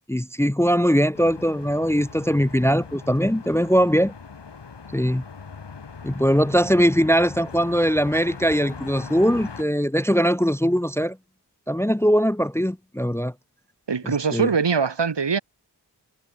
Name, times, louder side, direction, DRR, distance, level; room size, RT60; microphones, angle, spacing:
voice 1, 0.1-4.1 4.9-5.2 6.0-11.2 11.7-13.3 14.0-14.5, equal, 5° left, 0.6 m, -21 dB
sound 1, 1.1-9.6, left 5 dB, 75° left, 2.5 m, -40 dB
voice 2, 13.9-15.4, right 5 dB, 85° right, 2.5 m, -22 dB
cardioid pair, 40°, 42 cm